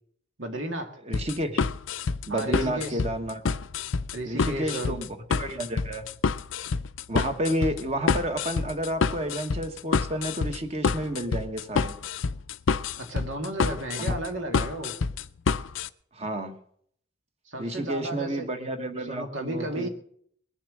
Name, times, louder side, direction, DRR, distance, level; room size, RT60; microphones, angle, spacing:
voice 1, 0.4-1.0 2.3-3.0 4.1-5.0 13.0-15.0 17.5-18.5 19.0-19.9, right 1 dB, 85° right, 5 dB, 1.9 m, -33 dB
voice 2, 1.0-1.6 2.3-3.4 4.3-6.1 7.1-12.0 14.0-14.1 16.1-16.5 17.6-19.9, right 1 dB, 35° right, 7 dB, 1.3 m, -31 dB
sound 1, 1.1-15.9, left 5 dB, 85° left, 0.5 m, -28 dB
20.5 x 7.3 x 6.2 m, 0.64 s
head